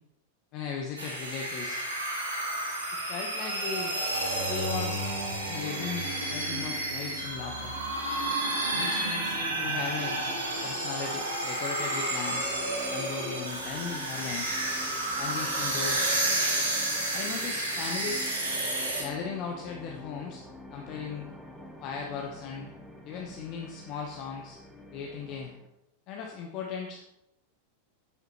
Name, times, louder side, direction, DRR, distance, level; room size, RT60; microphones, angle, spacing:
voice 1, 0.5-1.8 2.9-4.0 4.4-5.0 5.5-7.7 8.7-10.2 10.6-12.6 12.9-14.6 15.2-16.2 17.1-18.3 19.0-20.4 20.7-21.3 21.8-22.7 23.0-24.6 24.9-25.5 26.1-27.0, left 6 dB, 40° left, 1 dB, 1.0 m, -37 dB
sound 1, 1.0-19.0, right 1 dB, 80° right, 2.3 m, -31 dB
sound 2, 12.3-25.7, left 2 dB, ahead, 1.1 m, -47 dB
9.7 x 7.9 x 3.0 m, 0.88 s
figure-of-eight pair, 90°, 0 cm